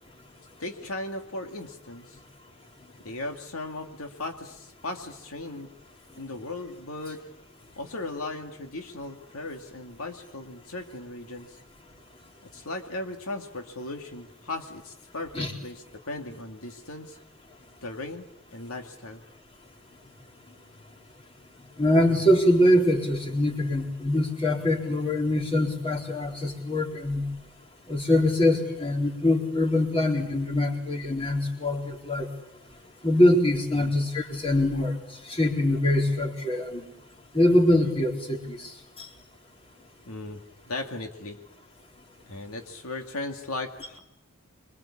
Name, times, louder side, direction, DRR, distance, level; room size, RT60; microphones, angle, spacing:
voice 1, 0.6-2.2 3.0-5.7 6.2-7.2 7.8-11.6 12.4-17.2 17.8-19.2 33.7-33.9 40.1-41.4 42.3-44.0, left 2 dB, 75° left, 4 dB, 2.2 m, -37 dB
voice 2, 21.8-27.3 27.9-32.3 33.0-35.0 35.3-36.8 37.3-39.1, left 1 dB, 25° left, 0 dB, 4.1 m, -23 dB
27.0 x 23.0 x 8.6 m, 0.82 s
head